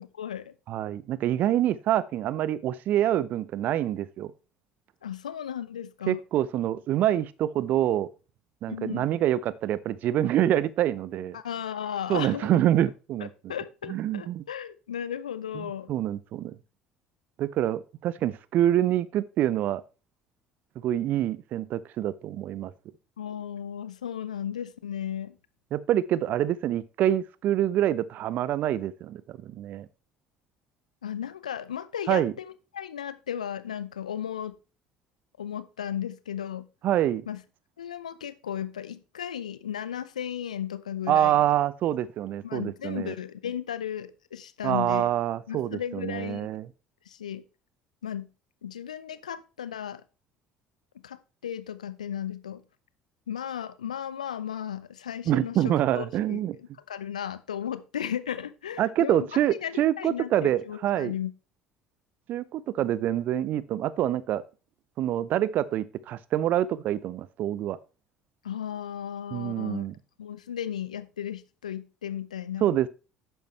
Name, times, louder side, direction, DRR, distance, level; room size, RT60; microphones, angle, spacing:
voice 1, 0.0-0.5 5.0-6.2 8.7-9.1 11.3-12.5 13.5-15.9 23.2-25.4 31.0-34.5 35.4-36.7 37.3-37.4 37.8-41.4 42.4-45.1 45.5-46.5 47.1-47.4 48.0-48.3 48.6-50.0 51.0-52.6 53.3-61.3 68.4-69.8 70.2-72.7, left 9 dB, 80° left, 0.8 m, -35 dB
voice 2, 0.7-4.3 6.1-8.1 8.6-11.4 12.1-13.5 13.9-14.4 15.9-16.6 17.4-19.8 20.8-22.7 25.7-29.9 32.1-32.3 36.8-37.3 41.1-43.1 44.6-46.7 55.3-56.6 58.8-61.1 62.3-64.4 65.0-67.8 69.3-69.9 72.6-72.9, right 12 dB, 50° right, 0.6 m, -26 dB
12.0 x 9.1 x 3.2 m
figure-of-eight pair, 60°, 4 cm